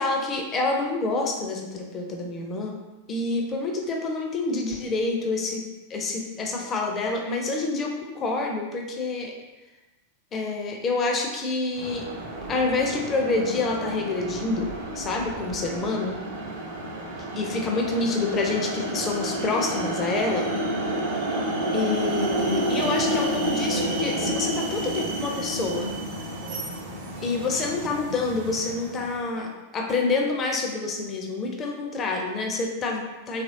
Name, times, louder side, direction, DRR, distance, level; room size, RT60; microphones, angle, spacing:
voice 1, 0.0-2.8 3.1-5.6 5.9-9.3 10.3-12.1 12.5-16.2 17.3-20.5 21.7-25.9 27.2-33.4, left 3 dB, 25° left, 1 dB, 0.5 m, -27 dB
sound 1, 11.7-29.2, right 1 dB, 50° right, 0.5 m, -30 dB
2.9 x 2.5 x 2.7 m, 1.1 s
figure-of-eight pair, 90°, 0 cm